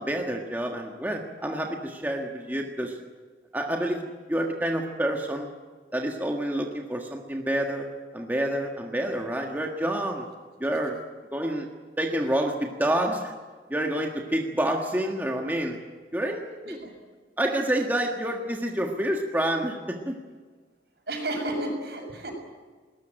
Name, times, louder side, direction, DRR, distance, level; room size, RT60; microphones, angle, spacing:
voice 1, 0.0-3.0 3.5-4.0 4.3-5.5 5.9-10.3 10.6-11.0 11.3-11.7 12.0-13.3 13.7-15.8 16.1-16.8 17.4-20.2, right 1 dB, 10° right, 1 dB, 1.6 m, -28 dB
voice 2, 21.1-22.3, right 1 dB, 65° right, 3 dB, 6.5 m, -32 dB
21.0 x 19.5 x 9.0 m, 1.4 s
head